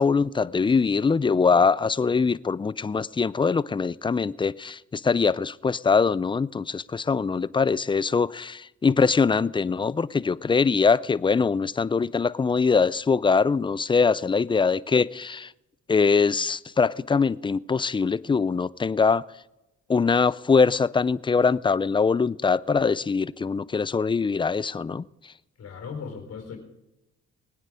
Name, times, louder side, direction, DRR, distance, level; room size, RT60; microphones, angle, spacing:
voice 1, 0.0-15.5 15.9-19.2 19.9-25.0, left 5 dB, 15° left, 0.4 m, -23 dB
voice 2, 25.6-26.6, left 5 dB, 55° left, 4.4 m, -37 dB
21.0 x 9.4 x 4.9 m
cardioid pair, 90°, 30 cm